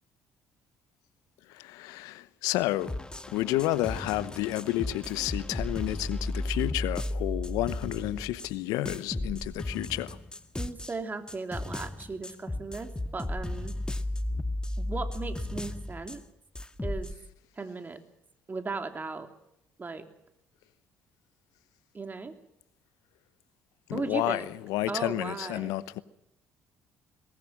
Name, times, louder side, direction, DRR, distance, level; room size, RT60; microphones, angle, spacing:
voice 1, 1.5-2.9 3.3-10.2 23.9-26.0, left 16 dB, 75° left, 0.9 m, -31 dB
sound 1, 2.8-8.5 8.9-11.0 11.3-16.2 16.6-17.1, left 1 dB, 15° left, 1.6 m, -35 dB
voice 2, 10.6-13.8 14.8-16.2 16.8-17.1 17.6-18.0 18.5-19.3 19.8-20.1 21.9-22.3 23.9-24.5 24.9-25.7, right 4 dB, 30° right, 3.1 m, -36 dB
22.5 x 19.5 x 7.5 m
hypercardioid pair, 55°, 6 cm